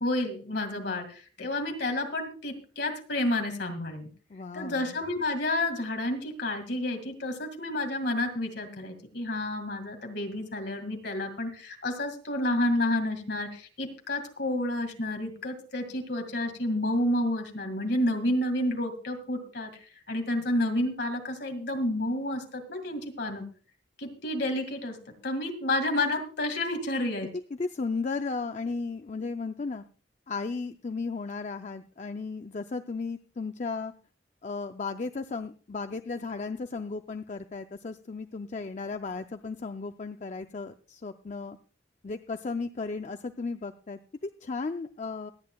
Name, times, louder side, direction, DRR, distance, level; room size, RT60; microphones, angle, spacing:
voice 1, 0.0-4.1 4.5-23.4 24.0-25.0 25.2-27.3, left 1 dB, 60° left, 5 dB, 2.1 m, -30 dB
voice 2, 4.3-5.0 27.6-29.8 30.3-33.9 34.4-41.6 42.0-45.3, left 4 dB, 40° left, 8 dB, 0.4 m, -35 dB
24.5 x 9.4 x 2.3 m, 0.38 s
head